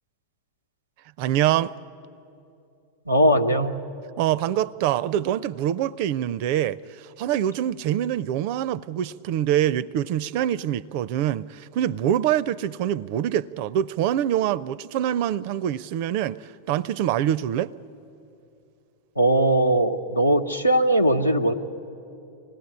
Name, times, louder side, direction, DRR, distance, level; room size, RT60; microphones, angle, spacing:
voice 1, 1.2-1.7 4.2-17.7, right 11 dB, 45° right, 0.5 m, -25 dB
voice 2, 3.1-3.8 19.2-21.5, right 1 dB, 85° left, 1.0 m, -20 dB
24.5 x 18.0 x 9.8 m
figure-of-eight pair, 90°, 0 cm